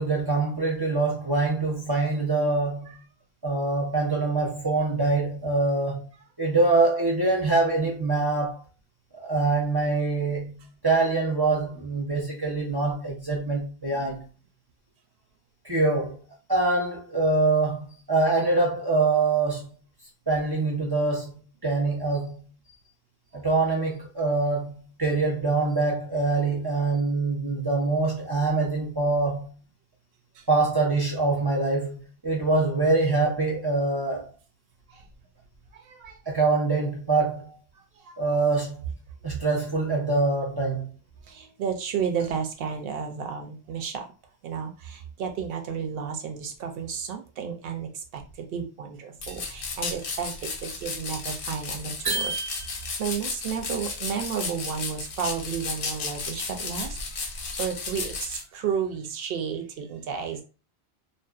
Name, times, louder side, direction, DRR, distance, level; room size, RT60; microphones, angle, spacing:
voice 1, 0.0-3.0 3.4-6.1 6.4-8.6 9.2-14.3 15.6-16.2 16.5-19.7 20.3-22.5 23.3-29.5 30.5-34.3 36.3-37.5 38.2-38.9 39.2-40.9, right 3 dB, 30° right, 0.5 m, -24 dB
voice 2, 41.3-44.1 44.4-50.3 50.6-52.3 53.0-57.3 57.6-60.4, right 7 dB, 65° right, 0.7 m, -32 dB
sound 1, 49.2-58.4, left 4 dB, 65° left, 0.7 m, -34 dB
sound 2, 52.0-53.2, right 4 dB, 85° right, 1.1 m, -31 dB
2.6 x 2.1 x 2.3 m
omnidirectional pair, 1.1 m